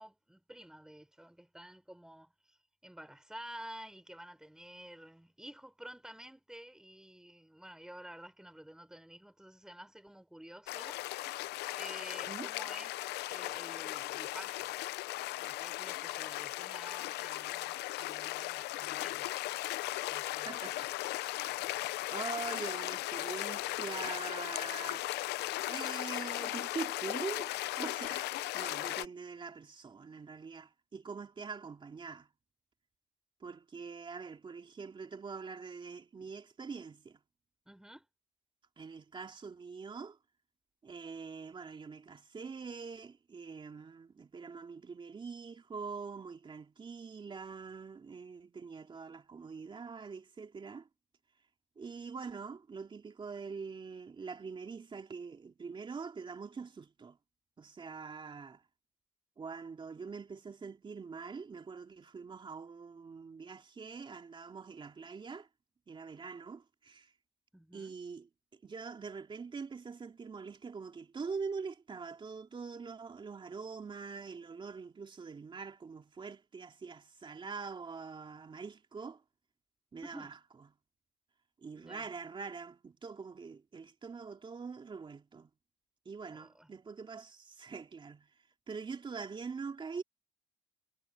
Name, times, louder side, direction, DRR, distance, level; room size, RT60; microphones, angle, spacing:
voice 1, 0.0-2.6 2.8-11.0 11.8-13.0 13.3-14.7 15.4-19.3 20.1-20.6 37.7-38.1 67.5-67.9 80.0-80.3 81.7-82.1 86.3-86.7, right 1 dB, 5° right, 7.0 m, -51 dB
sound 1, 10.7-29.1, left 17 dB, 80° left, 0.7 m, -37 dB
voice 2, 20.4-21.4 22.1-25.1 25.7-27.5 27.8-32.3 33.4-37.2 38.8-40.2 40.8-50.9 51.8-57.2 57.6-58.6 59.4-65.5 65.9-67.1 67.7-68.3 68.6-79.2 79.9-80.3 81.6-85.5 86.0-88.3 88.7-90.0, right 5 dB, 30° right, 2.9 m, -44 dB
cardioid pair, 110°, 17 cm